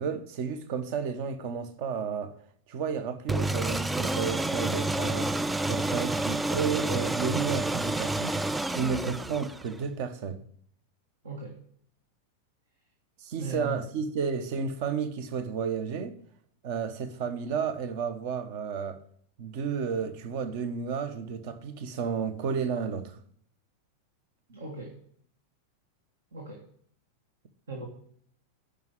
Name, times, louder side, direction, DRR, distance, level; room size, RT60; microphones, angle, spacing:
voice 1, 0.0-2.3 2.7-5.3 5.7-8.4 8.7-10.4 13.2-16.2 16.6-19.0 19.4-23.2, right 6 dB, 45° right, 1.0 m, -32 dB
sound 1, 3.3-9.8, right 2 dB, 10° right, 0.3 m, -29 dB
voice 2, 11.2-11.6 13.4-13.8 24.5-25.0 26.3-26.6 27.7-27.9, right 2 dB, 65° right, 1.9 m, -38 dB
10.5 x 5.1 x 7.9 m
figure-of-eight pair, 90°, 0 cm